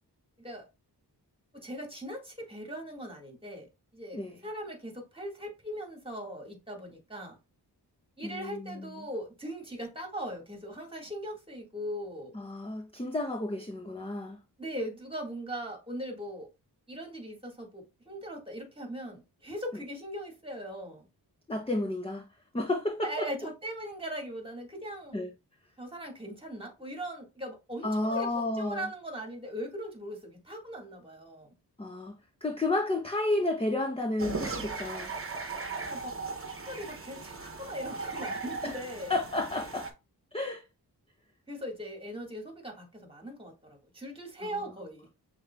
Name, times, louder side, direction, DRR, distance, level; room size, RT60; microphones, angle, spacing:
voice 1, 1.5-3.7 3.9-7.4 8.2-12.3 14.6-16.5 16.9-21.1 23.0-25.2 25.8-31.5 35.9-36.2 36.7-39.2 41.5-45.1, equal, 15° right, 1.8 m, -40 dB
voice 2, 8.2-9.1 12.3-14.4 21.5-22.3 22.5-23.3 25.1-25.3 27.8-28.9 31.8-32.1 32.4-35.1 38.6-38.7 39.1-39.9 40.3-40.6 44.4-44.5, left 2 dB, 15° left, 0.6 m, -31 dB
sound 1, 34.2-39.9, right 4 dB, 30° right, 1.0 m, -38 dB
6.4 x 3.3 x 2.3 m
wide cardioid pair, 65°, 41 cm